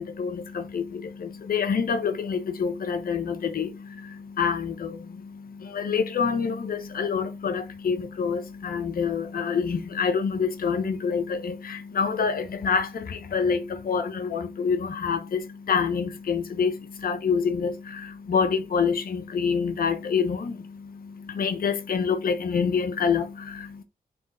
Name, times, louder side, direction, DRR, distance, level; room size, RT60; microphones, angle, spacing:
voice 1, 0.0-23.8, left 6 dB, 80° left, 0.9 m, -27 dB
8.5 x 5.2 x 2.4 m
cardioid pair, 85°, 15 cm